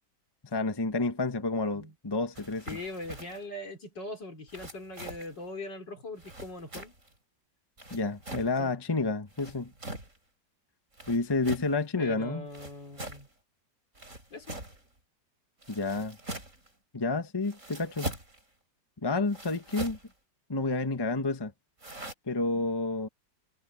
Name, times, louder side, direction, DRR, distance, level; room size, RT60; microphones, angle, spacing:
voice 1, 0.5-2.7 7.9-9.7 11.1-12.5 15.7-16.2 16.9-18.2 19.0-20.0 20.5-21.5 22.3-23.1, left 3 dB, 15° left, 1.1 m, -30 dB
sound 1, 2.3-3.5 4.5-5.4 6.2-7.1 7.8-8.5 9.3-10.2 10.9-11.8 12.5-13.3 13.9-14.9 15.6-16.7 17.4-18.4 19.3-20.1 21.8-22.1, right 1 dB, 40° right, 7.5 m, -42 dB
voice 2, 2.7-6.9 8.6-8.7 12.0-13.3 14.3-14.6, left 2 dB, 70° left, 4.8 m, -41 dB
omnidirectional pair, 2.0 m